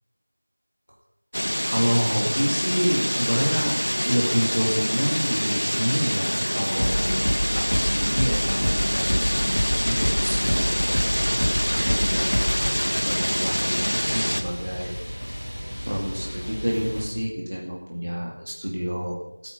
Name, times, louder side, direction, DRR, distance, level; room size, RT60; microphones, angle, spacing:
sound 1, 1.3-14.4, equal, 70° left, 1.8 m, -26 dB
voice 1, 1.7-7.2 7.5-11.1 11.7-12.3 12.8-15.0 15.9-19.5, equal, 20° right, -1 dB, 2.1 m, -28 dB
sound 2, 6.8-13.2, equal, 25° left, 2.0 m, -26 dB
sound 3, 8.9-17.0, equal, 5° right, 4.6 m, -35 dB
26.5 x 9.3 x 5.8 m, 0.87 s
figure-of-eight pair, 180°, 0 cm